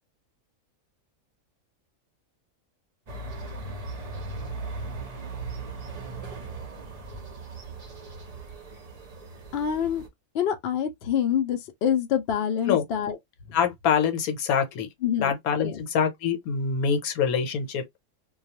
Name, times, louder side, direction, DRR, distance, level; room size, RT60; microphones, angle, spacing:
sound 1, 3.1-10.1, right 3 dB, 40° right, 0.5 m, -38 dB
voice 1, 9.5-10.0 10.3-13.2 15.0-15.3 15.6-15.8, left 9 dB, 60° left, 0.7 m, -26 dB
voice 2, 13.5-14.9 15.2-17.8, left 7 dB, 85° left, 1.2 m, -25 dB
2.3 x 2.3 x 2.8 m
omnidirectional pair, 1.5 m